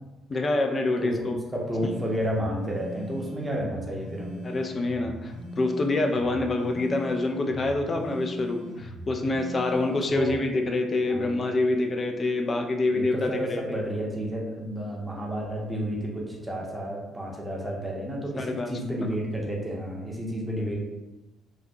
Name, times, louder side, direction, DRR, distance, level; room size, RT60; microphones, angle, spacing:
voice 1, 0.3-1.4 4.4-13.6 18.4-18.7, left 2 dB, 35° left, 4 dB, 0.3 m, -26 dB
voice 2, 1.0-4.4 9.8-10.4 11.1-11.4 12.9-20.8, equal, 15° right, -2 dB, 0.7 m, -31 dB
sound 1, 1.8-10.3, right 1 dB, 85° right, 0.7 m, -40 dB
2.5 x 2.1 x 2.5 m, 1.0 s
figure-of-eight pair, 45°, 0 cm